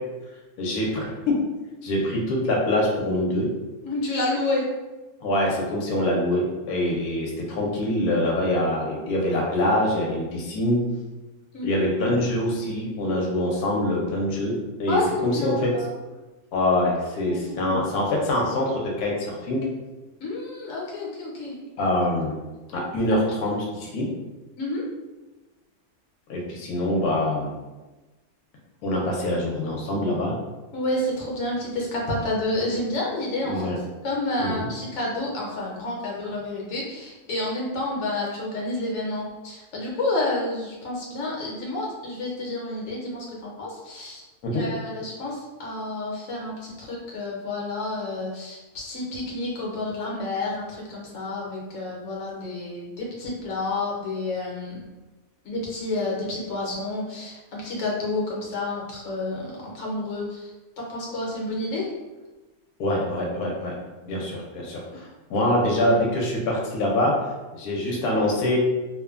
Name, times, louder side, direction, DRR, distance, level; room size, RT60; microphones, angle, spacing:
voice 1, 0.6-1.4 1.8-3.5 5.2-10.9 11.6-15.7 16.5-19.7 21.8-22.3 22.7-24.1 26.3-27.5 28.8-30.3 33.4-33.8 34.4-34.7 44.4-44.6 62.8-63.7 64.0-67.2 67.5-68.6, left 1 dB, 85° left, -2 dB, 1.1 m, -24 dB
voice 2, 3.8-4.7 11.5-11.8 14.9-15.9 17.2-17.8 20.2-21.5 24.6-24.8 30.7-33.7 34.0-44.2 44.5-54.8 55.4-60.5 60.8-61.9, left 2 dB, 60° left, -4 dB, 1.1 m, -29 dB
3.0 x 2.2 x 2.3 m, 1.1 s
omnidirectional pair, 1.6 m